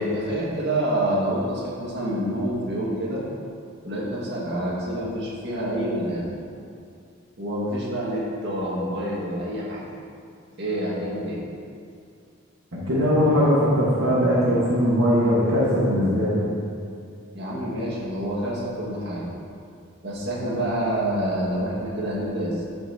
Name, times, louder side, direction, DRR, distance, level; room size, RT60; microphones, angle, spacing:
voice 1, 0.0-3.2 3.8-6.3 7.4-9.8 10.6-11.4 17.3-19.2 20.0-22.6, right 1 dB, 55° right, -6 dB, 1.9 m, -27 dB
voice 2, 12.7-16.4, equal, 75° right, -8 dB, 1.6 m, -20 dB
13.0 x 5.7 x 2.9 m, 2.4 s
head